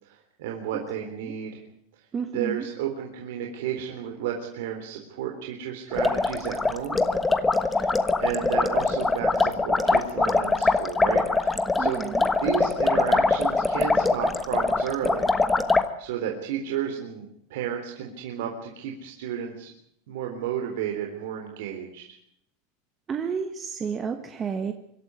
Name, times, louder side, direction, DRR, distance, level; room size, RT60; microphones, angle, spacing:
voice 1, 0.0-1.6 1.9-2.0 2.3-7.0 7.7-12.0 12.3-15.3 16.0-19.7 20.1-22.1, right 9 dB, 65° right, 2 dB, 3.8 m, -32 dB
voice 2, 2.1-2.6 11.8-12.3 23.1-24.7, right 6 dB, 20° right, 6 dB, 1.5 m, -31 dB
sound 1, 5.9-15.9, left 3 dB, 5° left, 1.3 m, -23 dB
25.0 x 13.5 x 9.6 m, 0.72 s
supercardioid pair, 170°, 0 cm